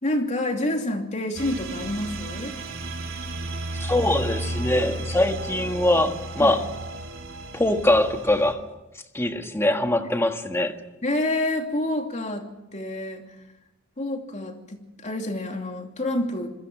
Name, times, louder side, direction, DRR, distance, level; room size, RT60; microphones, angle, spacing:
voice 1, 0.0-2.6 6.4-6.6 11.0-13.3 14.0-16.5, left 1 dB, 35° left, 2.8 m, -28 dB
sound 1, 1.4-8.5, right 2 dB, 65° right, 4.0 m, -33 dB
voice 2, 3.8-6.7 7.5-8.6 9.1-10.8, left 1 dB, 10° left, 1.6 m, -22 dB
27.0 x 21.5 x 6.2 m
head